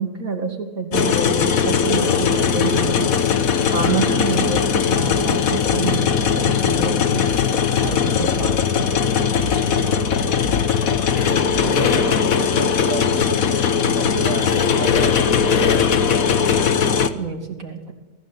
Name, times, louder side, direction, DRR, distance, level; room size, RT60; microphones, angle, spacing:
voice 1, 0.0-3.1 3.7-7.3 7.7-10.4 17.1-17.9, right 4 dB, 80° right, 2 dB, 3.2 m, -28 dB
sound 1, 0.9-17.1, left 7 dB, 90° left, 1.6 m, -19 dB
sound 2, 1.9-11.8, left 5 dB, 55° left, 1.3 m, -34 dB
voice 2, 4.1-4.6 8.2-8.5 11.6-16.5, right 5 dB, 50° right, 5 dB, 1.7 m, -32 dB
24.0 x 15.5 x 8.3 m, 1.2 s
omnidirectional pair, 1.4 m